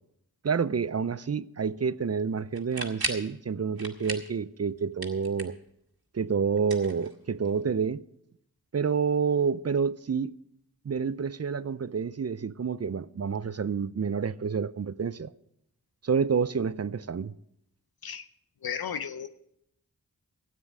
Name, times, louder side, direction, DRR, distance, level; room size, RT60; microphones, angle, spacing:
voice 1, 0.4-5.6 6.1-8.0 8.7-10.3 10.8-15.3 16.0-17.3, right 6 dB, 45° right, 0.5 m, -28 dB
sound 1, 2.5-3.3 3.8-4.4 4.7-5.7 6.6-7.5, right 2 dB, 85° right, 1.7 m, -36 dB
voice 2, 18.6-19.3, left 7 dB, 85° left, 0.6 m, -34 dB
13.5 x 9.4 x 6.1 m
wide cardioid pair, 45°, 36 cm